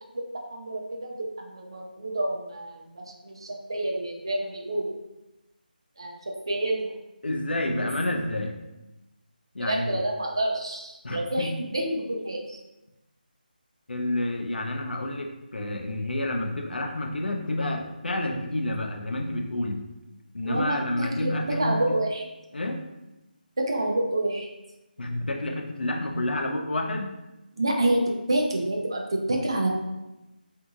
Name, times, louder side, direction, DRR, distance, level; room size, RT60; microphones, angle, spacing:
voice 1, 0.5-4.9 6.0-6.2 6.5-6.9 9.6-12.6 20.4-20.8 21.2-21.3 21.6-22.2 23.6-24.5 27.6-28.0 28.3-29.7, right 1 dB, 30° right, 0 dB, 0.3 m, -28 dB
voice 2, 7.2-8.5 9.5-10.0 11.0-11.5 13.9-19.9 20.3-22.0 22.5-22.8 25.0-27.1, left 1 dB, 90° left, 3 dB, 0.5 m, -29 dB
2.8 x 2.7 x 2.4 m, 0.99 s
figure-of-eight pair, 180°, 5 cm